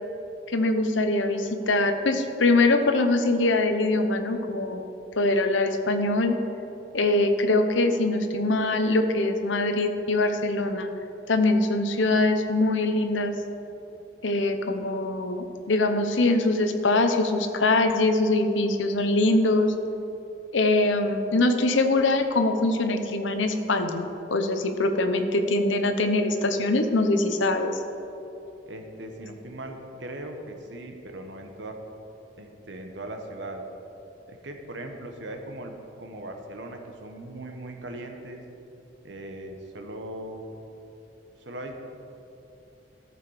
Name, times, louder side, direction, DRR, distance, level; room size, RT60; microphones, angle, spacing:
voice 1, 0.5-4.8 5.2-6.4 6.9-10.9 11.3-13.3 14.2-19.7 20.5-27.8, left 2 dB, 75° left, 7 dB, 0.8 m, -23 dB
voice 2, 28.7-31.8 32.4-33.7 34.3-38.4 39.0-40.4 41.4-41.7, right 1 dB, 70° right, 4 dB, 1.1 m, -39 dB
13.5 x 6.8 x 4.8 m, 3.0 s
head